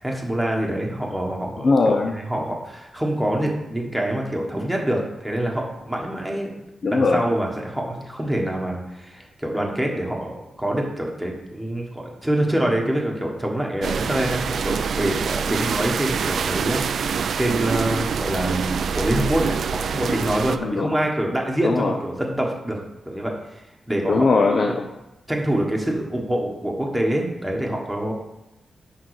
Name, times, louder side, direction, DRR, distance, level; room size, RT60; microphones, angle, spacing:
voice 1, 0.0-6.5 6.9-22.8 23.1-24.3 25.3-28.1, right 1 dB, 5° right, -1 dB, 1.4 m, -26 dB
voice 2, 1.6-2.1 6.8-7.2 17.9-18.0 20.6-20.9 21.6-21.9 24.1-24.8, left 3 dB, 45° left, 3 dB, 0.6 m, -19 dB
sound 1, 13.8-20.6, right 6 dB, 70° right, 0.4 m, -25 dB
10.5 x 3.8 x 4.9 m, 0.94 s
wide cardioid pair, 150°, 0 cm